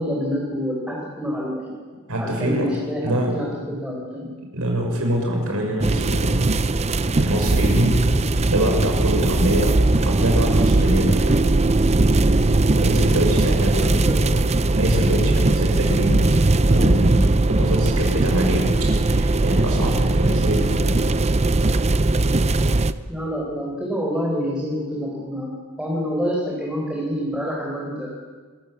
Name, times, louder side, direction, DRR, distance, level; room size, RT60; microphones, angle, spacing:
voice 1, 0.0-1.8 2.2-4.3 13.5-14.4 23.1-28.1, equal, 5° right, -4 dB, 4.4 m, -27 dB
voice 2, 2.1-2.7 3.0-3.3 4.5-6.5 7.1-8.0 8.3-11.5 12.4-12.5 12.8-14.0 14.8-16.1 16.7-17.2 17.5-18.7 19.0-21.0, right 1 dB, 70° right, 1 dB, 6.7 m, -24 dB
sound 1, 5.8-22.9, right 2 dB, 30° right, 0.7 m, -19 dB
26.0 x 15.5 x 8.2 m, 1.5 s
head